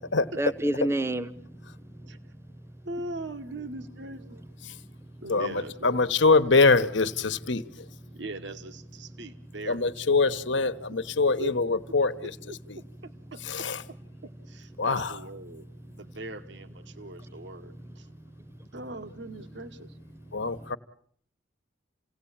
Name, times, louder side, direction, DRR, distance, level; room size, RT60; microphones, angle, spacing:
voice 1, 0.4-1.3, right 1 dB, 15° right, 1.0 m, -27 dB
voice 2, 2.8-4.4 5.2-6.0 8.1-10.3 11.4-11.5 12.5-12.6 13.3-13.7 14.2-18.1 18.7-20.0, right 2 dB, 65° right, 1.2 m, -41 dB
voice 3, 5.3-7.6 9.7-12.3 12.7-12.8 13.5-13.8 14.8-15.1 20.3-20.8, left 3 dB, 70° left, 1.2 m, -24 dB
29.0 x 18.0 x 8.8 m
head